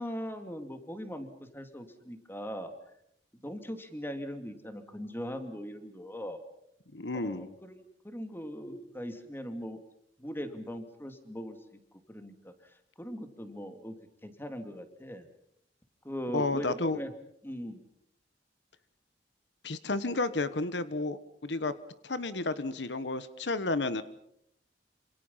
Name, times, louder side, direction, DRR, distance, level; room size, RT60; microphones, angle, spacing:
voice 1, 0.0-2.7 3.3-6.4 7.1-9.8 10.2-11.8 12.1-12.7 13.0-13.9 14.2-15.3 16.0-17.1 17.4-17.8, equal, 15° left, 8 dB, 2.7 m, -40 dB
voice 2, 6.9-7.5 16.3-17.0 19.6-21.7 22.0-24.0, left 2 dB, 80° left, 14 dB, 1.2 m, -31 dB
27.0 x 27.0 x 5.7 m, 0.73 s
head